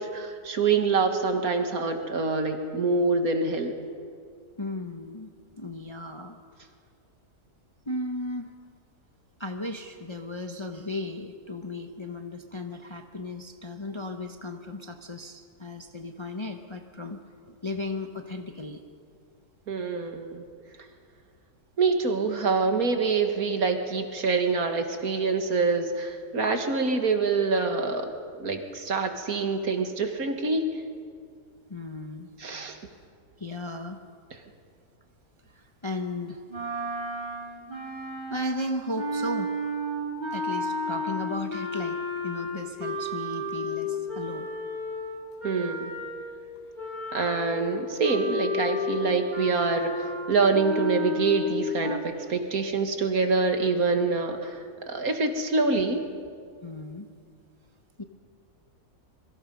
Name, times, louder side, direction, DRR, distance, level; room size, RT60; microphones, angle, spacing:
voice 1, 0.0-3.7 19.7-20.4 21.8-28.1 28.4-30.6 32.4-32.8 45.4-45.9 47.1-54.6 54.9-56.0, right 4 dB, 65° right, 5 dB, 2.2 m, -26 dB
voice 2, 4.6-5.3 5.6-6.4 7.9-8.5 9.4-17.2 17.5-18.8 31.7-32.3 33.4-34.0 35.5-36.4 38.3-39.5 40.3-44.5 56.6-57.1 58.0-58.1, left 1 dB, 20° left, 5 dB, 0.9 m, -35 dB
sound 1, 36.5-46.3 46.7-52.0, left 2 dB, 25° right, 3.6 m, -32 dB
25.5 x 23.0 x 5.4 m, 2.2 s
omnidirectional pair, 1.7 m